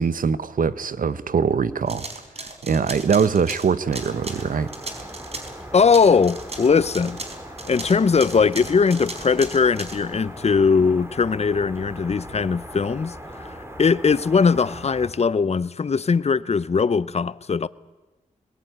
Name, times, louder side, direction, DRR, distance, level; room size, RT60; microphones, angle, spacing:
voice 1, 0.0-2.1 2.4-4.7, right 6 dB, 70° right, 1.0 m, -22 dB
sound 1, 1.9-5.6 5.9-10.0, right 2 dB, 45° right, 4.2 m, -36 dB
sound 2, 3.8-15.1, equal, 20° right, 4.5 m, -39 dB
voice 2, 5.7-7.2 7.6-17.7, left 5 dB, 50° left, 0.7 m, -20 dB
21.5 x 20.0 x 9.3 m
cardioid pair, 55°, 14 cm